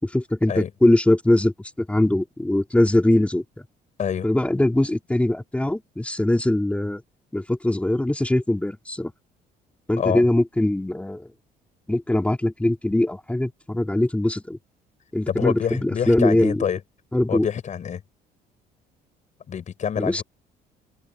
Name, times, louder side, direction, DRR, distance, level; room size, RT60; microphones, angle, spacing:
voice 1, 0.0-3.4 4.2-7.0 7.3-9.1 9.9-11.3 11.9-14.6 15.1-16.7 17.1-17.5 20.0-20.2, left 1 dB, 5° left, 3.4 m, -21 dB
voice 2, 15.3-16.8 17.3-18.0 19.5-20.2, left 8 dB, 45° left, 7.9 m, -26 dB
cardioid pair, 110°, 17 cm